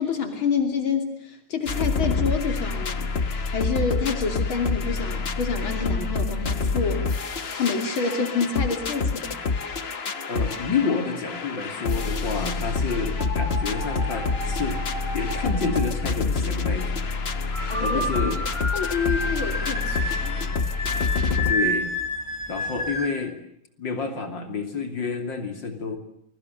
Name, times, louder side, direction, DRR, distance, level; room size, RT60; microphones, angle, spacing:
voice 1, 0.0-3.1 3.4-7.1 7.5-9.4 17.7-18.0 18.4-18.5 18.7-20.6, left 5 dB, 80° left, 5 dB, 3.7 m, -28 dB
sound 1, 1.7-21.5, left 4 dB, 35° left, 1.3 m, -27 dB
voice 2, 10.3-14.8 15.1-16.9 17.8-18.4 21.5-21.9 22.5-23.4 23.8-26.0, left 5 dB, 65° left, 6 dB, 3.6 m, -29 dB
sound 2, 13.2-16.1 17.5-23.1, left 1 dB, 15° right, 5.7 m, -30 dB
28.5 x 22.5 x 8.0 m, 0.74 s
omnidirectional pair, 2.2 m